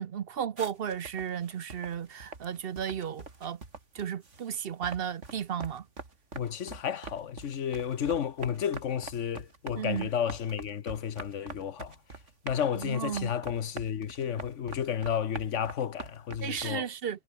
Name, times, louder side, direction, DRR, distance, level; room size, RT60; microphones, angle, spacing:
voice 1, 0.0-3.6 3.9-5.8 9.8-10.1 12.7-13.3 16.4-17.2, right 8 dB, 55° right, 0.9 m, -34 dB
sound 1, 0.6-4.6 4.8-16.7, right 3 dB, 80° right, 3.4 m, -44 dB
voice 2, 6.3-11.9 12.4-16.9, left 8 dB, 80° left, 1.4 m, -32 dB
omnidirectional pair, 1.2 m